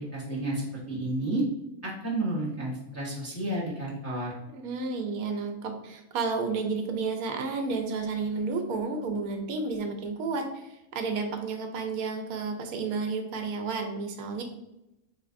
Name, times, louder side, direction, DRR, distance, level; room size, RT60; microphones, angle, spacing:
voice 1, 0.0-1.4 1.8-4.3, right 1 dB, 15° left, -5 dB, 0.5 m, -31 dB
voice 2, 4.5-14.4, right 4 dB, 80° right, 4 dB, 1.0 m, -31 dB
3.4 x 3.2 x 2.5 m, 0.89 s
omnidirectional pair, 1.6 m